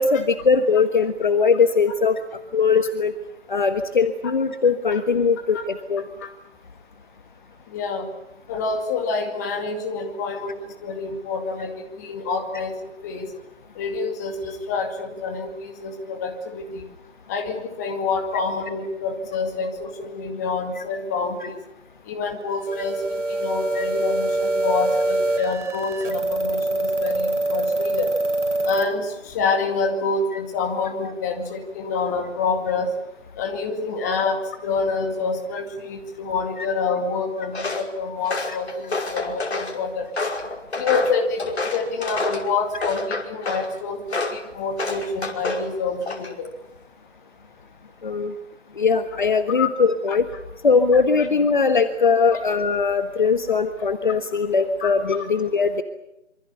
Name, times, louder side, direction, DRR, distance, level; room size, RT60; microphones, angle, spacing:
voice 1, 0.0-2.2 2.5-3.1 3.5-6.0 23.7-23.8 48.0-48.3 48.8-50.3 50.6-55.8, left 5 dB, 40° left, 8 dB, 1.5 m, -20 dB
voice 2, 7.7-8.1 8.5-12.7 13.0-13.3 13.8-16.9 17.3-21.5 22.1-28.1 28.6-32.9 33.4-40.1 40.8-44.0 44.3-46.5 49.5-49.7 51.2-51.3 52.3-52.4 54.8-54.9, left 4 dB, 15° left, 3 dB, 2.2 m, -27 dB
sound 1, 22.7-28.8, right 2 dB, 70° right, 6.4 m, -24 dB
Walk footsteps, 37.5-37.9 38.2-39.7 40.2-42.5 42.8-43.7 44.1-44.4 44.8-45.7 46.0-46.5, left 3 dB, 60° left, 5.5 m, -28 dB
26.5 x 25.5 x 7.0 m, 0.87 s
figure-of-eight pair, 165°, 37 cm